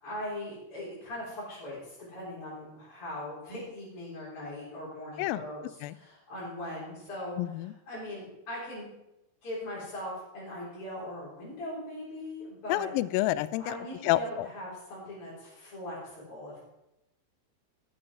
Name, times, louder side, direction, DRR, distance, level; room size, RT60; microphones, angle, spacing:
voice 1, 0.0-8.9 9.4-12.9 13.6-16.6, left 1 dB, 35° left, -9 dB, 4.8 m, -40 dB
voice 2, 7.4-7.7 12.7-13.7 14.0-14.5, left 15 dB, 85° left, 16 dB, 2.1 m, -28 dB
13.5 x 7.8 x 5.4 m, 0.89 s
omnidirectional pair, 4.6 m